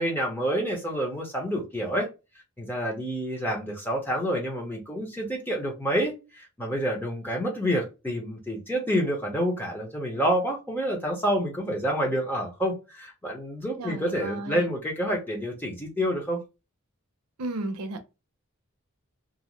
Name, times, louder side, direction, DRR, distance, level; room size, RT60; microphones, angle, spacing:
voice 1, 0.0-2.1 2.6-16.4, equal, 10° left, 0.7 m, -28 dB
voice 2, 13.8-14.7 17.4-18.1, right 2 dB, 90° right, 0.6 m, -34 dB
2.5 x 2.0 x 2.9 m
head